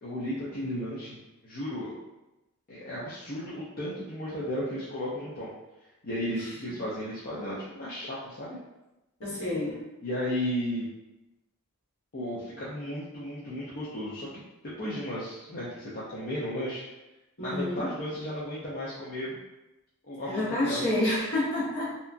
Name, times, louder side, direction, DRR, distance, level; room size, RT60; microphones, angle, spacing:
voice 1, 0.0-1.2 1.4-1.9 2.7-5.5 6.0-8.6 10.0-10.9 12.1-16.8 17.4-19.4 20.0-20.8, equal, 40° left, -8 dB, 0.5 m, -34 dB
voice 2, 9.2-9.9 17.4-17.9 20.2-22.0, left 1 dB, 65° left, -8 dB, 1.2 m, -29 dB
2.8 x 2.3 x 2.5 m, 0.99 s
head